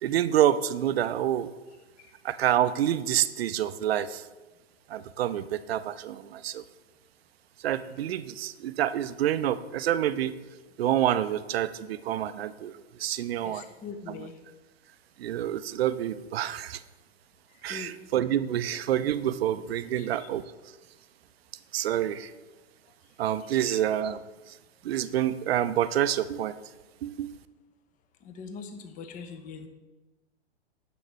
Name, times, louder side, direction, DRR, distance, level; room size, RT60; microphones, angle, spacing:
voice 1, 0.0-1.5 2.2-4.2 4.9-6.6 7.6-10.3 10.8-13.6 15.2-16.8 17.6-20.4 21.7-22.3 23.2-24.6 24.8-26.6 27.0-27.3, right 11 dB, 60° right, 13 dB, 0.5 m, -27 dB
voice 2, 13.4-14.4 17.7-18.0 20.0-20.3 23.5-23.8 28.2-29.7, left 5 dB, 25° left, 7 dB, 0.8 m, -42 dB
9.7 x 7.2 x 3.2 m, 1.2 s
hypercardioid pair, 115°, 35 cm